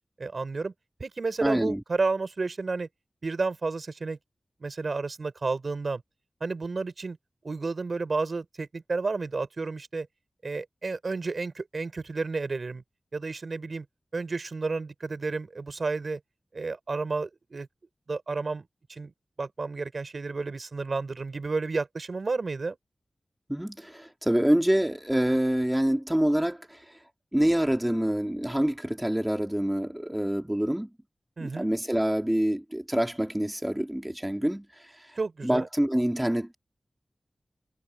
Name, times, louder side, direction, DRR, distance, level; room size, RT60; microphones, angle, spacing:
voice 1, 0.2-0.7 1.0-2.9 3.2-4.2 4.6-6.0 6.4-7.2 7.4-10.1 10.4-12.8 13.1-13.9 14.1-16.2 16.5-17.7 18.1-19.1 19.4-22.8 31.4-31.7 35.2-35.7, right 3 dB, 65° right, 4.3 m, -31 dB
voice 2, 1.4-1.8 23.5-26.8 27.3-30.9 31.4-34.7 35.4-36.5, right 1 dB, 10° right, 2.2 m, -26 dB
cardioid pair, 50°, 0 cm